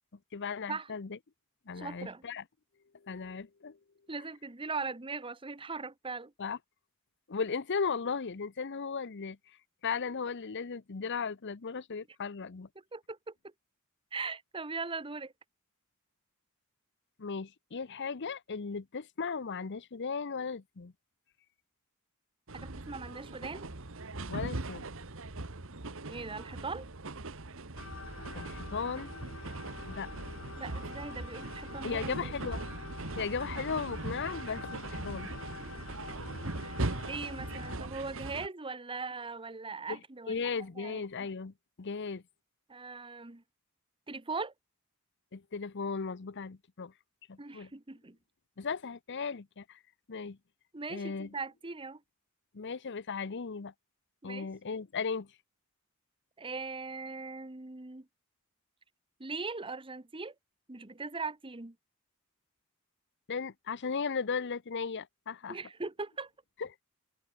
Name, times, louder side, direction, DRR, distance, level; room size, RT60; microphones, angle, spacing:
voice 1, 0.3-1.2 1.7-2.4 3.0-3.8 6.4-6.6 7.3-9.4 9.8-12.7 17.2-20.9 24.3-24.8 28.3-29.1 29.9-30.1 31.8-32.6 33.2-35.3 39.9-40.0 40.3-42.2 45.3-46.9 47.3-47.7 48.6-49.8 50.1-50.4 50.9-51.3 52.5-53.7 54.2-55.3 63.3-65.6 66.6-66.7, left 5 dB, 55° left, 0.7 m, -36 dB
voice 2, 1.8-2.2 4.1-6.3 12.9-13.5 14.1-15.3 22.5-23.7 26.0-26.9 30.6-32.3 35.7-35.9 36.4-36.8 37.0-40.4 40.8-41.0 42.7-43.4 44.1-44.5 47.4-48.2 50.7-52.0 54.2-54.5 56.4-58.1 59.2-60.3 60.7-61.7 65.5-66.3, right 4 dB, 25° right, 1.2 m, -40 dB
sound 1, 22.5-38.5, right 2 dB, 70° right, 1.8 m, -40 dB
sound 2, 27.7-37.8, left 2 dB, 70° left, 4.7 m, -45 dB
head